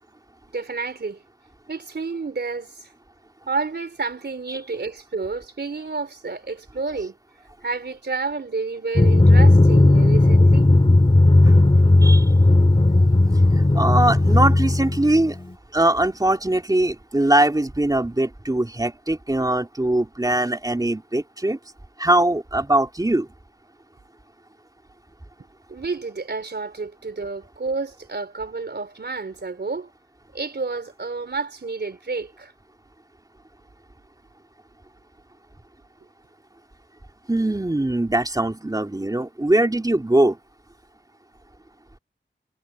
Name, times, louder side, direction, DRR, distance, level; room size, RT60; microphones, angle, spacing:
voice 1, 0.5-1.2 1.7-2.9 3.5-7.2 7.6-10.7 25.7-29.9 30.3-32.5, right 4 dB, 60° right, 3.8 m, -30 dB
Drum, 9.0-15.4, left 2 dB, 30° left, 2.9 m, -15 dB
voice 2, 13.7-15.4 15.7-21.6 22.0-23.3 37.3-40.4, right 1 dB, 20° right, 3.1 m, -21 dB
wide cardioid pair, 90°, 19 cm